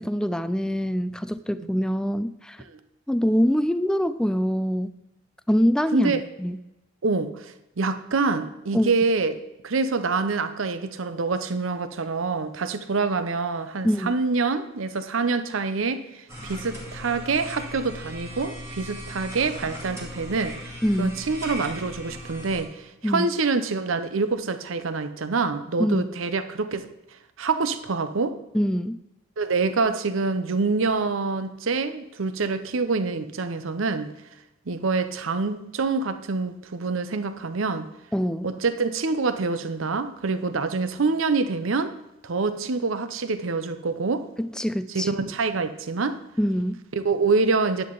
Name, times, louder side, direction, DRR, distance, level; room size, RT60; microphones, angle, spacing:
voice 1, 0.0-2.6 3.1-5.0 5.5-6.1 6.4-6.6 8.7-8.9 13.8-14.1 20.8-21.2 23.0-23.3 25.8-26.0 28.5-29.0 38.1-38.5 44.4-45.1 46.4-46.8, equal, 5° left, 13 dB, 0.3 m, -24 dB
voice 2, 5.9-6.2 7.0-9.4 9.6-20.7 21.0-26.9 27.4-28.4 29.4-34.1 34.7-37.9 38.4-41.9 42.2-44.3 44.9-46.2 46.9-47.8, right 4 dB, 70° right, 11 dB, 0.7 m, -26 dB
sound 1, 16.3-22.6, equal, 15° right, 2.0 m, -38 dB
10.5 x 7.7 x 3.9 m, 0.92 s
head